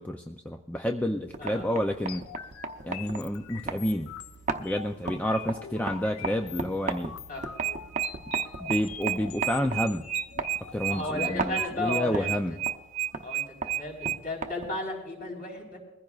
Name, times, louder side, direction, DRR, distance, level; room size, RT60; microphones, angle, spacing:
voice 1, 0.0-2.2 2.8-4.1 4.6-7.2 8.6-10.0 10.7-12.6, equal, 5° left, 4 dB, 0.4 m, -29 dB
sound 1, 1.2-14.9, right 4 dB, 35° right, 0.7 m, -38 dB
sound 2, 2.1-11.7, left 8 dB, 85° left, 0.6 m, -44 dB
sound 3, 7.4-14.2, right 13 dB, 80° right, 0.4 m, -31 dB
voice 2, 10.9-12.6 13.2-15.8, left 2 dB, 40° left, -2 dB, 4.3 m, -34 dB
22.5 x 15.0 x 2.4 m, 0.99 s
head